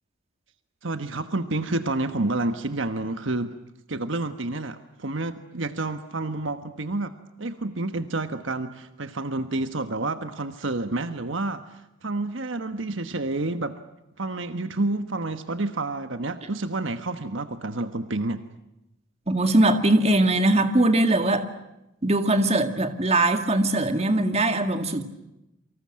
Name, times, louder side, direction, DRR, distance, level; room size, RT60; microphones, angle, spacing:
voice 1, 0.8-3.5 3.9-7.1 7.4-13.8 14.2-18.4, right 2 dB, 60° right, 9 dB, 1.3 m, -29 dB
voice 2, 19.3-21.5 22.0-25.0, right 1 dB, 30° right, 8 dB, 2.0 m, -21 dB
28.0 x 25.0 x 7.6 m, 0.90 s
head